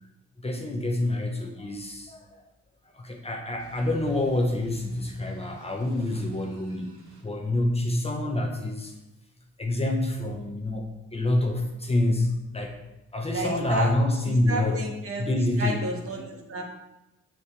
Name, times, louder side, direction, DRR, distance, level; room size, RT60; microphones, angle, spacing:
voice 1, 0.4-2.4 2.9-8.9 9.6-12.8 13.1-14.8 15.2-15.8, left 1 dB, 20° left, 1 dB, 1.1 m, -27 dB
sound 1, 3.6-7.3, right 1 dB, 80° right, 2.8 m, -52 dB
voice 2, 13.3-13.9 14.3-16.6, right 2 dB, 45° right, 0 dB, 1.7 m, -32 dB
7.0 x 7.0 x 3.3 m, 0.94 s
cardioid pair, 90°, 30 cm